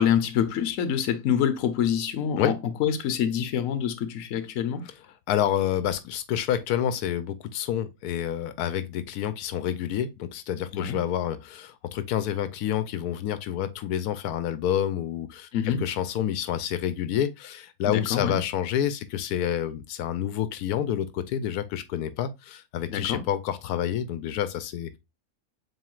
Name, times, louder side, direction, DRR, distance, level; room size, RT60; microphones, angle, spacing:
voice 1, 0.0-2.5 2.8-4.9 10.7-11.0 15.5-15.9 17.8-18.4 22.9-23.2, left 8 dB, 65° left, 1.1 m, -26 dB
voice 2, 5.3-25.0, left 10 dB, 90° left, 1.1 m, -28 dB
7.3 x 3.1 x 2.3 m
omnidirectional pair, 1.6 m